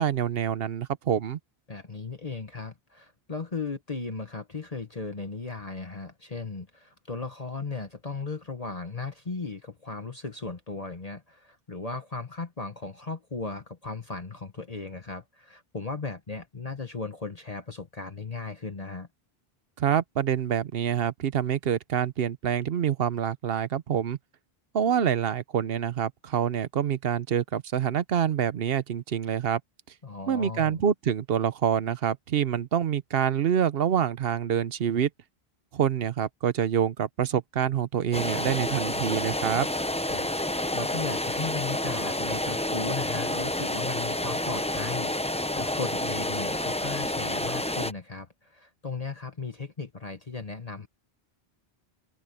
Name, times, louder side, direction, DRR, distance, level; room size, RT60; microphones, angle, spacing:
voice 1, 0.0-1.4 19.8-24.2 24.7-29.6 30.3-35.1 35.7-39.7, right 9 dB, 70° right, 1.0 m, -26 dB
voice 2, 1.7-19.1 30.0-30.8 40.0-50.9, left 3 dB, 40° left, 1.5 m, -36 dB
sound 1, 38.1-47.9, left 1 dB, 10° left, 0.6 m, -29 dB
omnidirectional pair, 1.0 m